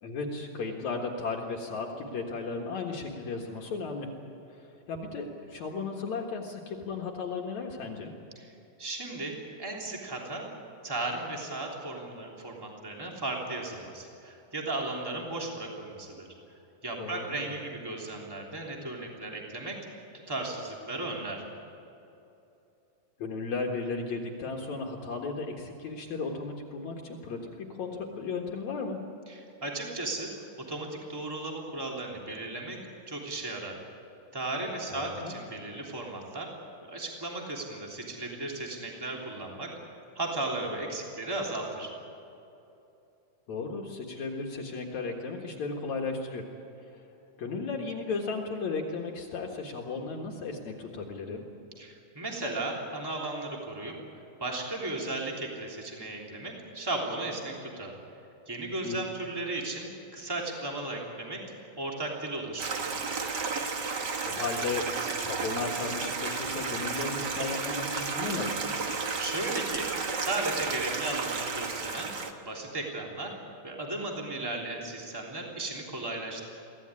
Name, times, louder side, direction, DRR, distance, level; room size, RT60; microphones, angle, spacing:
voice 1, 0.0-4.1 4.5-8.1 17.0-17.6 23.2-29.0 34.9-35.3 43.5-46.5 46.8-47.0 47.4-51.4 58.8-59.0 64.3-64.9 65.1-68.7, left 4 dB, 65° left, 0 dB, 2.9 m, -35 dB
voice 2, 8.8-9.3 9.6-10.4 10.8-16.3 16.8-19.7 20.3-21.4 29.3-30.3 30.7-32.8 33.1-33.7 34.3-36.5 36.9-39.7 40.1-41.9 51.8-53.9 54.4-58.0 58.5-61.4 61.8-62.9 69.2-72.1 72.4-73.3 73.6-76.4, right 2 dB, 5° right, -1 dB, 3.0 m, -35 dB
Stream, 62.6-72.3, right 4 dB, 45° right, 1.5 m, -32 dB
24.0 x 16.0 x 9.7 m, 2.8 s
omnidirectional pair, 3.6 m